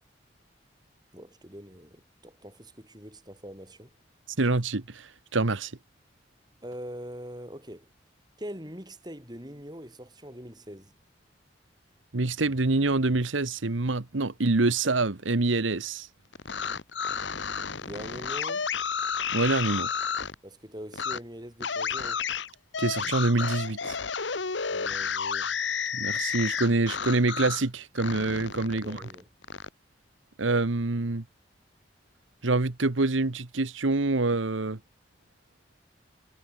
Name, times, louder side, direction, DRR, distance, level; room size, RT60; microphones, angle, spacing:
voice 1, 1.1-3.9 6.6-7.9 8.4-10.9 17.8-18.7 20.4-22.3 24.7-25.5 28.7-29.3, equal, 20° right, 7.6 m, -43 dB
voice 2, 4.4-5.7 12.1-16.1 19.3-19.9 22.8-24.0 25.9-29.0 30.4-31.2 32.4-34.8, right 2 dB, 90° right, 1.2 m, -26 dB
sound 1, 16.3-20.3 20.9-21.2 21.6-27.6 28.0-29.7, left 6 dB, 70° left, 1.3 m, -31 dB
head